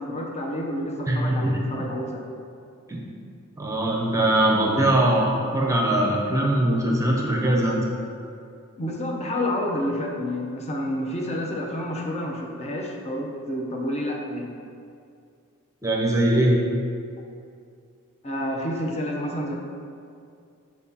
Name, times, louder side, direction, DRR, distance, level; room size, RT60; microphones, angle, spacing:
voice 1, 0.0-2.2 8.8-14.6 18.2-19.6, left 1 dB, 30° left, 0 dB, 0.7 m, -29 dB
voice 2, 1.1-1.6 2.9-3.0 3.6-7.8 15.8-16.6, right 1 dB, 15° right, -1 dB, 0.7 m, -21 dB
7.8 x 4.6 x 2.8 m, 2.4 s
head